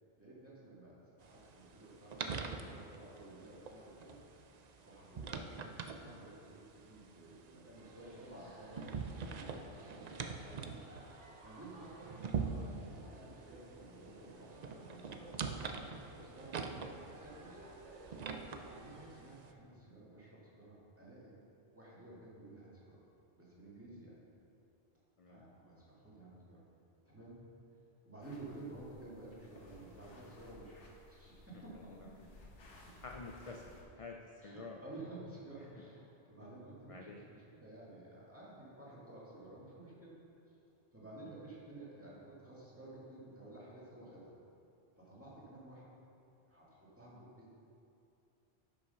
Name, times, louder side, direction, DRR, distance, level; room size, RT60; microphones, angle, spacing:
voice 1, 0.2-4.2 4.8-10.9 11.4-17.7 18.7-21.3 21.7-23.0 23.3-24.2 25.3-26.6 27.0-27.4 28.0-30.8 31.1-32.5 32.8-32.9 34.4-40.2 40.5-40.6 40.9-44.3 45.0-45.8 46.5-47.7, right 2 dB, 10° right, -7 dB, 2.1 m, -53 dB
sound 1, 1.2-19.5, right 5 dB, 50° right, 0.5 m, -45 dB
sound 2, 7.7-19.1, right 2 dB, 80° right, 1.5 m, -58 dB
sound 3, 28.2-33.8, left 1 dB, 80° left, 1.6 m, -58 dB
voice 2, 31.7-32.1 33.0-33.7 34.0-34.8 35.7-35.8 36.9-37.2, left 4 dB, 45° left, 1 dB, 0.4 m, -49 dB
9.7 x 5.8 x 5.5 m, 2.7 s
omnidirectional pair, 1.2 m